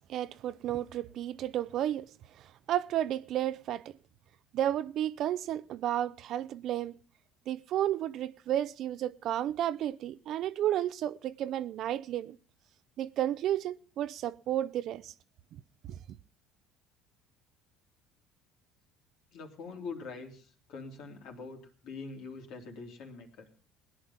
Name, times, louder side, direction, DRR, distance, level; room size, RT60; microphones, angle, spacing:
voice 1, 0.1-2.1 2.4-3.8 4.5-7.0 7.5-12.4 13.0-15.1 15.9-16.2, right 12 dB, 60° right, 0.6 m, -32 dB
voice 2, 19.3-23.5, left 4 dB, 70° left, 3.2 m, -44 dB
17.5 x 10.5 x 5.7 m
supercardioid pair, 85°, 0 cm